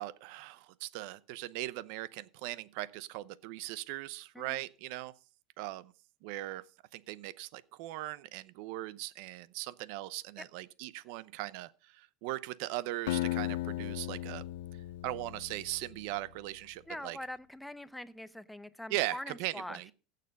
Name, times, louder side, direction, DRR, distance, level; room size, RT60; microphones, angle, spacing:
voice 1, 0.0-5.1 5.6-5.9 6.2-6.6 6.9-14.4 15.0-17.2 18.9-19.9, right 17 dB, 60° right, 0.7 m, -39 dB
Acoustic guitar, 13.1-16.1, left 16 dB, 85° left, 0.6 m, -36 dB
voice 2, 16.9-19.8, left 1 dB, 5° left, 0.6 m, -43 dB
15.5 x 6.7 x 5.3 m
supercardioid pair, 150°, 0 cm